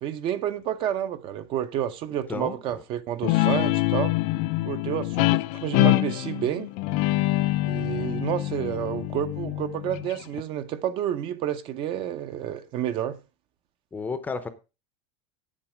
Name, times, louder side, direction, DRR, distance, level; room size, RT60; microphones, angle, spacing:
voice 1, 0.0-4.1 4.6-6.7 7.6-13.2, right 10 dB, 35° right, 0.7 m, -30 dB
voice 2, 2.3-2.8 13.9-14.5, left 4 dB, 10° left, 0.7 m, -32 dB
Guitar, 3.2-10.4, left 18 dB, 50° left, 0.5 m, -25 dB
8.9 x 7.5 x 5.0 m
supercardioid pair, 160°, 15 cm